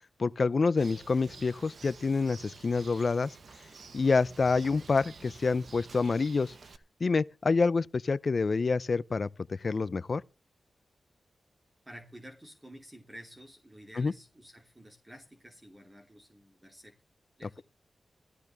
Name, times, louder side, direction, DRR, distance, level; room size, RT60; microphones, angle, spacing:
voice 1, 0.2-3.3 3.9-6.5 7.0-10.2 14.0-14.1, left 4 dB, 50° left, 0.6 m, -27 dB
Bird, 0.8-6.8, right 4 dB, 65° right, 1.3 m, -50 dB
voice 2, 11.9-17.0 17.4-17.6, equal, 15° right, 2.8 m, -51 dB
15.0 x 13.5 x 3.5 m
cardioid pair, 75°, 0 cm